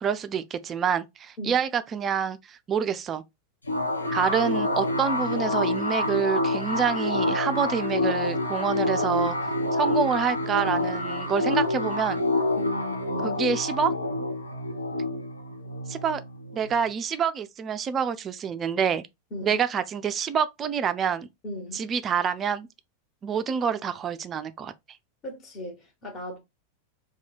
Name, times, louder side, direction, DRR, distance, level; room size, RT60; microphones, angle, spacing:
voice 1, 0.0-3.2 4.1-9.4 9.7-12.2 13.2-13.9 15.9-16.2 16.5-19.0 19.4-21.3 21.7-22.7 23.2-24.7, right 7 dB, 25° right, 0.4 m, -27 dB
sound 1, 3.7-16.9, left 1 dB, 80° left, 0.6 m, -27 dB
voice 2, 12.6-13.4 19.3-19.6 21.4-21.8 25.2-26.4, left 1 dB, 30° left, 1.3 m, -37 dB
2.7 x 2.3 x 4.2 m
figure-of-eight pair, 90°, 0 cm